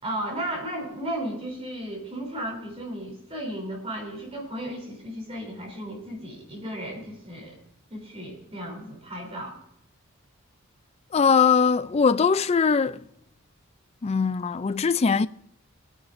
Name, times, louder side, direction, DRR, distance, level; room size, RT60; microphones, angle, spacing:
voice 1, 0.0-7.5 7.9-9.6, right 1 dB, 30° right, 3.4 m, -34 dB
voice 2, 11.1-13.1 14.0-15.3, left 5 dB, 30° left, 0.3 m, -21 dB
22.5 x 10.0 x 2.6 m
head